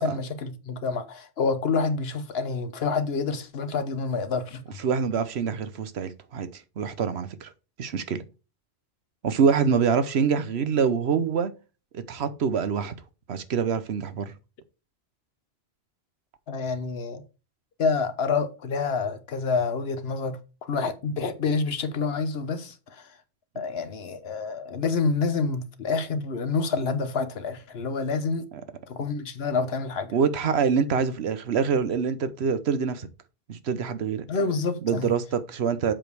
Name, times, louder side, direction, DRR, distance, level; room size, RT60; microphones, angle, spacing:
voice 1, 0.0-4.6 16.5-17.2 17.8-23.1 23.5-28.5 28.9-30.1 34.3-35.1, left 4 dB, 75° left, 1.2 m, -28 dB
voice 2, 4.8-7.5 7.8-8.2 9.2-11.5 11.9-12.9 13.3-14.3 30.1-33.1 33.5-34.3 34.8-35.9, right 6 dB, 90° right, 1.1 m, -25 dB
7.4 x 5.2 x 4.7 m
omnidirectional pair, 1.0 m